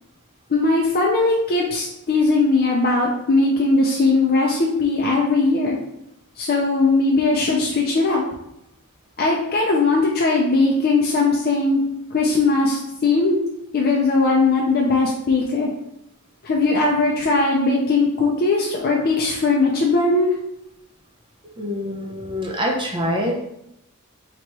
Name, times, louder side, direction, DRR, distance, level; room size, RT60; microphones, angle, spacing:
voice 1, 0.5-5.8 6.4-8.2 9.2-11.8 12.1-13.4 13.7-15.7 16.4-20.3, left 3 dB, 45° left, -2 dB, 0.5 m, -19 dB
voice 2, 21.6-23.3, equal, 20° right, -1 dB, 0.6 m, -25 dB
3.0 x 2.9 x 4.6 m, 0.81 s
head